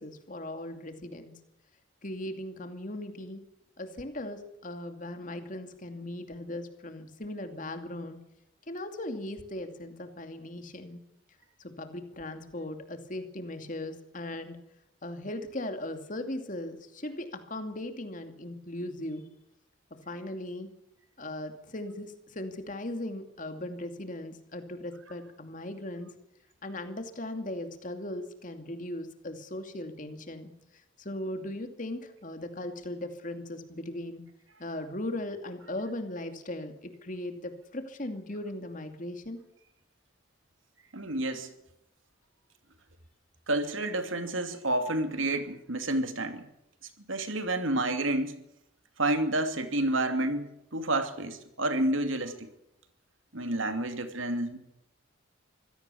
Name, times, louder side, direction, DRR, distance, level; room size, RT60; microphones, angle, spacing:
voice 1, 0.0-1.3 2.0-3.4 3.8-8.2 8.7-11.0 11.6-14.6 15.0-19.3 19.9-20.7 21.2-26.1 26.6-34.2 34.6-39.4, left 1 dB, 40° left, 7 dB, 2.6 m, -38 dB
voice 2, 40.9-41.5 43.5-46.5 47.1-48.3 49.0-52.5 53.3-54.6, right 1 dB, 90° right, 7 dB, 2.8 m, -29 dB
25.0 x 16.5 x 7.1 m, 0.83 s
head